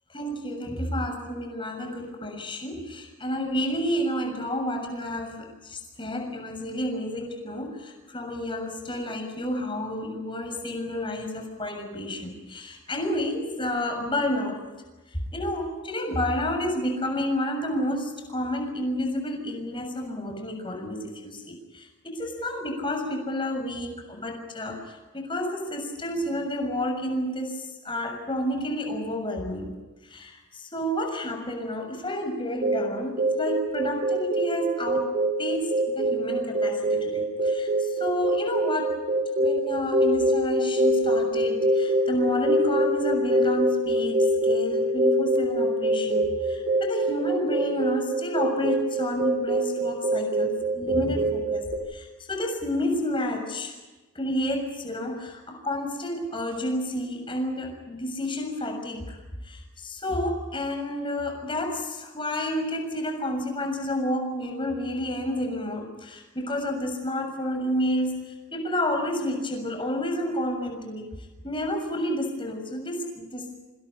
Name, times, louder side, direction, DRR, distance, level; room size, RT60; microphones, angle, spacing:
voice 1, 0.1-14.6 15.1-29.7 30.0-35.1 35.4-39.1 39.4-51.6 51.9-53.8 54.2-59.2 59.4-71.1 71.4-73.7, left 1 dB, 25° left, 4 dB, 6.9 m, -30 dB
sound 1, 32.6-51.8, right 1 dB, 40° right, 5.5 m, -25 dB
27.0 x 26.5 x 5.6 m, 1.2 s
head